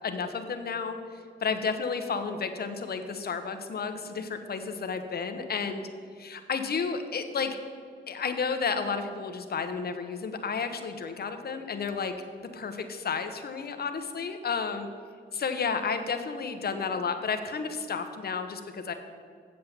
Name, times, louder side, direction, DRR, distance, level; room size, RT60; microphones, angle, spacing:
voice 1, 0.0-5.8 6.2-7.6 8.1-12.1 12.4-14.9 15.3-18.9, left 5 dB, 55° left, 7 dB, 1.0 m, -32 dB
7.9 x 7.6 x 7.2 m, 2.1 s
cardioid pair, 70°, 19 cm